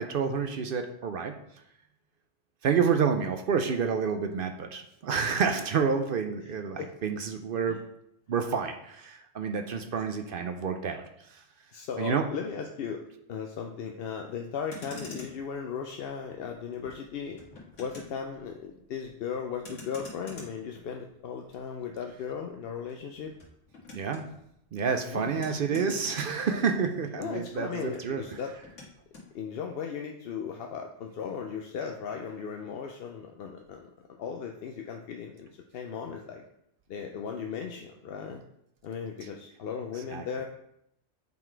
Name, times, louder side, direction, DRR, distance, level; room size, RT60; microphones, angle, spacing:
voice 1, 0.0-1.4 2.6-7.8 8.3-11.0 11.3-11.4 12.0-12.2 23.9-24.2 24.7-28.4 40.1-40.3, right 6 dB, 60° right, 6 dB, 0.6 m, -29 dB
voice 2, 11.7-13.0 13.3-17.4 17.8-23.3 25.1-25.4 25.7-26.0 27.2-28.5 29.3-33.9 34.2-36.4 36.9-38.4 38.8-40.5, left 6 dB, 60° left, 3 dB, 0.7 m, -37 dB
Motor vehicle (road), 14.6-27.1 27.4-29.3, left 2 dB, 75° left, 2.0 m, -49 dB
7.2 x 4.0 x 4.5 m, 0.77 s
omnidirectional pair, 1.3 m